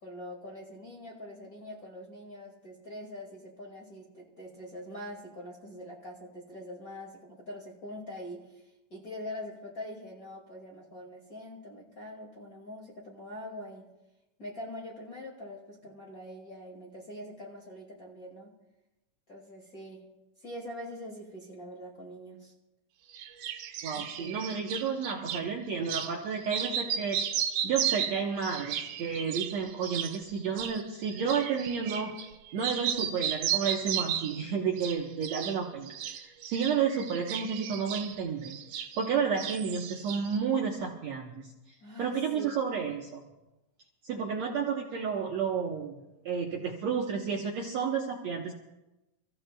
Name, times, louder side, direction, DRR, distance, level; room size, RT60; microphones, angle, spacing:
voice 1, 0.0-13.9 14.4-18.6 19.3-20.1 20.4-22.5 24.0-24.4 41.8-42.6, left 1 dB, 30° left, -4 dB, 1.9 m, -44 dB
sound 1, 23.1-25.4 25.9-26.1 26.4-32.3 32.6-34.4 34.8-35.6 35.9-39.1 39.4-40.4, right 9 dB, 85° right, 2.8 m, -34 dB
voice 2, 23.8-27.2 27.6-32.3 32.5-41.5 42.0-43.3 44.0-48.5, right 6 dB, 65° right, 0 dB, 1.8 m, -31 dB
29.5 x 15.0 x 2.3 m, 0.98 s
omnidirectional pair, 4.4 m